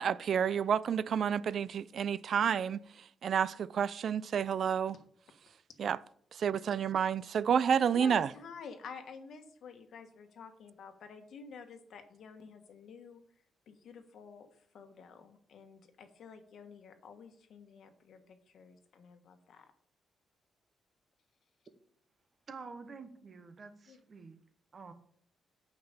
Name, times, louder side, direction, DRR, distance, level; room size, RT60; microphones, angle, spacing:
voice 1, 0.0-2.8 3.2-5.0 5.8-6.0 6.4-8.3, right 7 dB, 55° right, 0.3 m, -29 dB
voice 2, 7.9-13.2 13.7-14.5 14.7-19.7 23.9-24.0, left 5 dB, 65° left, 1.4 m, -50 dB
voice 3, 22.5-24.4 24.7-24.9, right 4 dB, 40° right, 1.1 m, -48 dB
8.7 x 5.8 x 6.7 m
cardioid pair, 135°, 0 cm